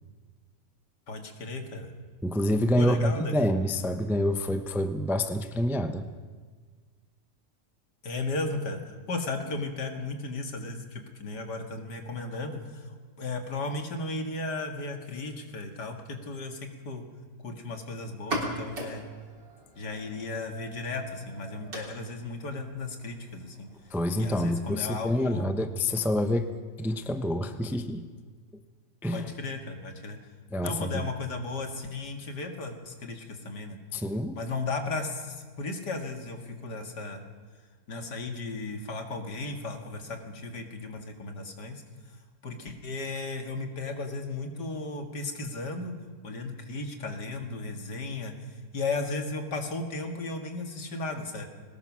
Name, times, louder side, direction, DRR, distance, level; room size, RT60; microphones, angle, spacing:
voice 1, 1.1-1.9 2.8-3.3 8.0-8.8 9.1-17.0 17.4-19.0 19.8-23.7 24.2-25.5 29.1-30.2 30.6-33.8 34.3-37.2 37.9-41.8 42.4-45.9 46.2-48.3 48.7-51.5, left 3 dB, 75° left, 5 dB, 2.6 m, -35 dB
voice 2, 2.2-6.1 23.9-26.5 26.8-28.1 29.0-29.3 30.5-31.0 33.9-34.4, left 1 dB, ahead, 8 dB, 0.5 m, -27 dB
sound 1, 18.1-25.6, right 1 dB, 85° right, 4.1 m, -41 dB
22.0 x 19.5 x 6.3 m, 1.5 s
omnidirectional pair, 1.8 m